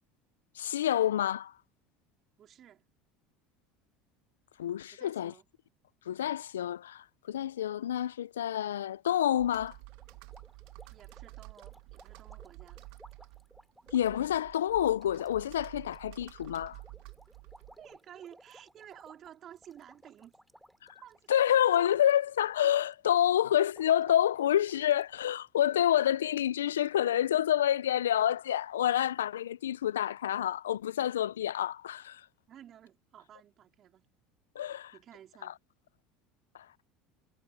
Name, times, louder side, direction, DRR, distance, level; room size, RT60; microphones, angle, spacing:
voice 1, 0.6-1.5 4.6-5.3 6.1-9.8 13.9-16.8 21.3-32.3 34.6-34.9 35.4-35.5 36.5-36.7, left 11 dB, 90° left, 0.5 m, -28 dB
voice 2, 2.4-2.8 4.9-5.5 10.9-12.8 17.8-20.3 21.0-21.6 32.5-34.1 34.9-35.6, right 10 dB, 45° right, 3.4 m, -53 dB
Computer keyboard, 9.4-18.0, right 24 dB, 70° right, 1.4 m, -50 dB
sound 1, 9.5-22.2 22.5-22.9 23.4-25.4 25.6-25.8 26.1-26.2 26.8-26.9 27.1-27.3, equal, 5° right, 2.8 m, -59 dB
hypercardioid pair, 80°, 0 cm